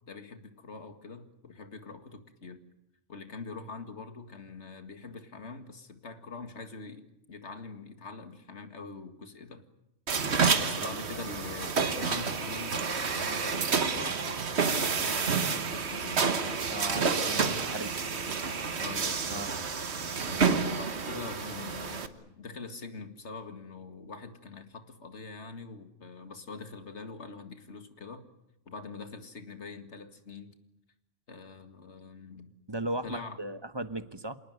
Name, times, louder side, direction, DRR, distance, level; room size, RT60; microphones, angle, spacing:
voice 1, 0.1-2.6 3.1-9.7 10.6-14.4 14.6-16.4 18.8-19.5 20.3-28.3 28.7-30.5 31.3-32.5 33.0-33.4, left 4 dB, 60° left, 7 dB, 2.3 m, -44 dB
sound 1, 10.1-22.1, right 5 dB, 60° right, 1.5 m, -29 dB
voice 2, 16.7-18.0 19.3-19.5 32.7-34.4, right 1 dB, 20° right, 11 dB, 1.1 m, -36 dB
27.5 x 19.0 x 9.4 m, 0.88 s
omnidirectional pair, 1.3 m